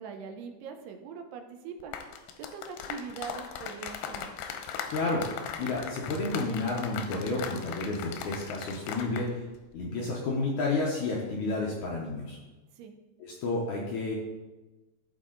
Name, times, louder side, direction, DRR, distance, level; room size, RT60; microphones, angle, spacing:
voice 1, 0.0-2.0 2.4-4.3 12.8-13.0, right 6 dB, 80° right, 5 dB, 2.8 m, -42 dB
sound 1, 1.8-9.3 9.5-9.8, left 7 dB, 90° left, 2.9 m, -39 dB
voice 2, 4.9-9.4 9.7-12.4 13.2-14.1, left 3 dB, 70° left, -3 dB, 1.9 m, -31 dB
14.0 x 4.8 x 3.9 m, 1.1 s
omnidirectional pair, 4.6 m